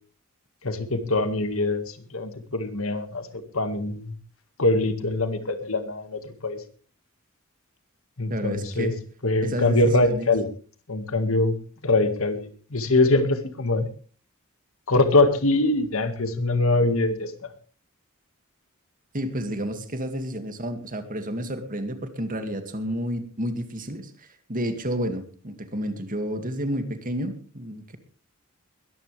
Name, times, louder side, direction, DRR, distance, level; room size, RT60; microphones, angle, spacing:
voice 1, 0.6-3.3 3.5-4.1 4.6-6.6 8.2-8.9 9.2-10.5 10.9-11.5 11.8-13.9 14.9-17.3, left 2 dB, 70° left, 9 dB, 1.9 m, -23 dB
voice 2, 8.3-9.0 9.4-10.3 19.1-28.0, equal, 40° right, 8 dB, 2.3 m, -30 dB
21.5 x 14.0 x 3.4 m, 0.39 s
head